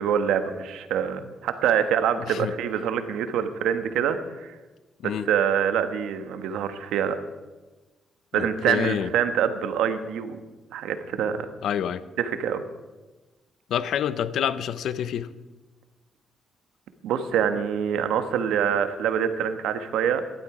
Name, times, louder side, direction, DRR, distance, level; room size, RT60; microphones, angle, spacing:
voice 1, 0.0-4.6 5.0-7.2 8.3-10.4 10.7-11.5 12.2-12.6 17.0-20.2, right 8 dB, 85° right, 9 dB, 1.2 m, -25 dB
voice 2, 8.3-9.1 11.6-12.0 13.7-15.3, left 9 dB, 75° left, 15 dB, 0.7 m, -28 dB
15.5 x 12.0 x 4.9 m, 1.2 s
cardioid pair, 90°, 0 cm